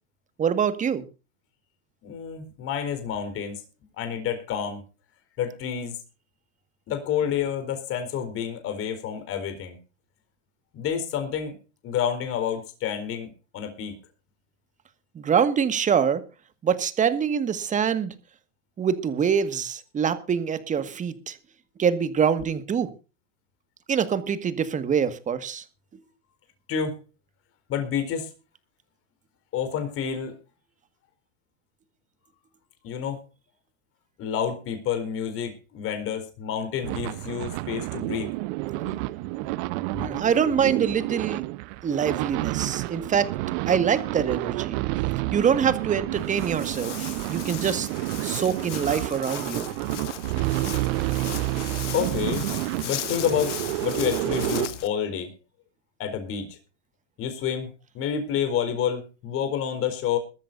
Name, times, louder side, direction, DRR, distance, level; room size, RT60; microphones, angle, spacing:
voice 1, 0.4-1.1 15.2-16.2 16.6-18.1 18.8-21.4 21.8-22.9 23.9-25.6 40.0-41.4 41.8-43.3 43.7-44.8 45.3-47.9 48.2-49.7, right 7 dB, 20° right, 12 dB, 1.8 m, -25 dB
voice 2, 2.0-3.6 3.9-4.8 5.4-6.0 6.9-9.8 10.7-11.5 11.8-13.9 26.7-27.0 27.7-28.3 29.5-30.3 32.8-33.2 34.2-38.3 38.8-39.0 39.9-40.2 51.9-52.5 52.8-55.3 56.0-56.6 57.2-60.2, left 8 dB, 40° left, 7 dB, 4.3 m, -29 dB
sound 1, 36.8-54.7, right 20 dB, 50° right, 0.9 m, -29 dB
Walk footsteps, 46.1-54.9, left 12 dB, 80° left, 1.9 m, -37 dB
22.0 x 13.5 x 2.6 m, 0.33 s
supercardioid pair, 125°, 35 cm